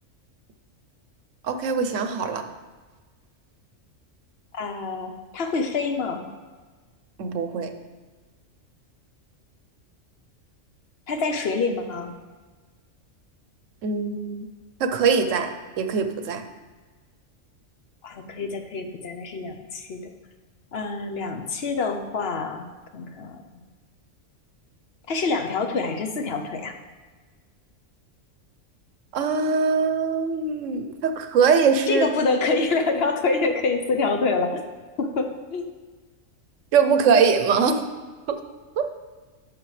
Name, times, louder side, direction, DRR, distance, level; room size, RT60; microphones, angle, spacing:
voice 1, 1.4-2.4 7.2-7.7 13.8-14.5 14.8-16.4 29.1-32.1 36.7-37.8 38.3-38.4 38.8-38.9, right 5 dB, 75° right, 7 dB, 1.0 m, -22 dB
voice 2, 4.5-6.2 11.1-12.1 18.0-20.0 20.7-22.7 22.9-23.4 25.1-26.7 31.9-34.6 35.0-35.7, left 4 dB, 55° left, 5 dB, 0.9 m, -26 dB
11.0 x 6.3 x 3.2 m, 1.3 s
omnidirectional pair, 1.3 m